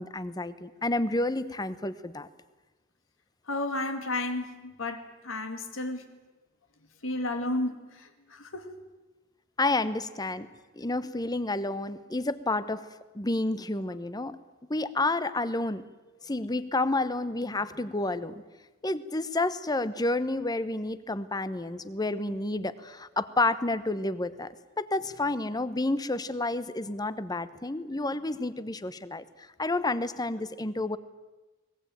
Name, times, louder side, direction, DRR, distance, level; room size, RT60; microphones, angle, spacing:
voice 1, 0.0-2.3 9.6-10.5 10.8-12.9 13.1-14.4 14.7-15.8 16.2-18.4 18.8-24.5 24.8-29.2 29.6-31.0, left 2 dB, 20° left, 14 dB, 0.9 m, -30 dB
voice 2, 3.5-6.2 7.0-8.7, left 2 dB, 80° left, 7 dB, 2.2 m, -33 dB
22.5 x 20.0 x 9.1 m, 1.2 s
head